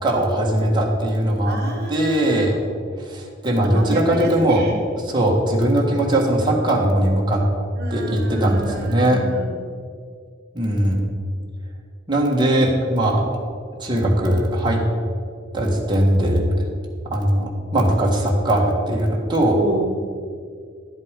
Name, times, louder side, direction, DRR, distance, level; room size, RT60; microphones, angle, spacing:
voice 1, 0.0-1.6 1.9-2.6 3.0-4.6 5.1-7.4 7.9-9.2 10.5-11.1 12.1-13.3 13.8-14.8 15.5-16.4 17.1-19.6, right 1 dB, 25° right, -2 dB, 1.6 m, -19 dB
voice 2, 1.4-2.4 3.5-4.8 7.7-9.5 19.6-19.8, right 2 dB, 55° right, 0 dB, 1.2 m, -29 dB
11.0 x 8.2 x 5.2 m, 2.1 s
head